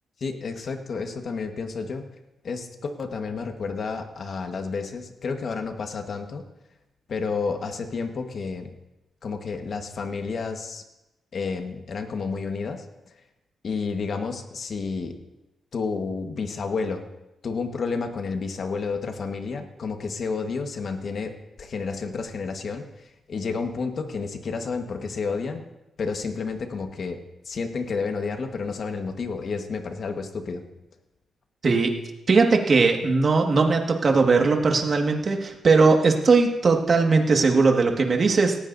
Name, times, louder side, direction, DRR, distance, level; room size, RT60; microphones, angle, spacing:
voice 1, 0.2-2.1 2.4-6.4 7.1-8.7 9.2-10.8 11.3-12.8 13.6-15.1 15.7-17.1 17.4-25.7 26.0-30.6, left 4 dB, 55° left, 5 dB, 1.5 m, -30 dB
voice 2, 31.6-31.9 32.3-38.6, right 4 dB, 45° right, 2 dB, 1.8 m, -19 dB
18.0 x 15.0 x 2.7 m, 0.99 s
cardioid pair, 95°, 0 cm